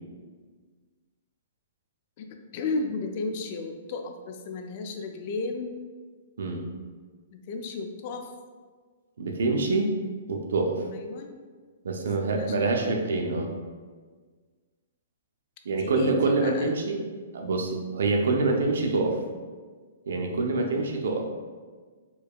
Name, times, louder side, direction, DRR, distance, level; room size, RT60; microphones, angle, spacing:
voice 1, 2.2-5.8 7.3-8.3 10.9-11.3 12.0-13.0 15.7-16.7, left 3 dB, 45° left, 5 dB, 0.4 m, -34 dB
voice 2, 9.2-9.9 10.3-10.8 11.8-13.5 15.6-17.0 17.3-19.2 20.1-21.2, right 3 dB, 75° right, 2 dB, 0.6 m, -26 dB
4.5 x 2.7 x 2.3 m, 1.5 s
hypercardioid pair, 150°, 0 cm